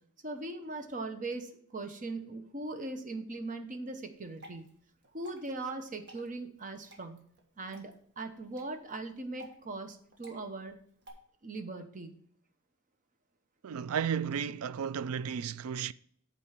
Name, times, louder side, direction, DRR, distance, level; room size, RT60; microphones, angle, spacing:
voice 1, 0.2-4.6 5.1-7.2 7.6-10.8 11.4-12.1, right 2 dB, 40° right, 1.0 m, -40 dB
Water / Drip, 4.1-11.1, equal, 55° right, 1.6 m, -56 dB
voice 2, 13.6-15.9, right 7 dB, 85° right, 0.4 m, -33 dB
8.7 x 4.5 x 5.9 m
head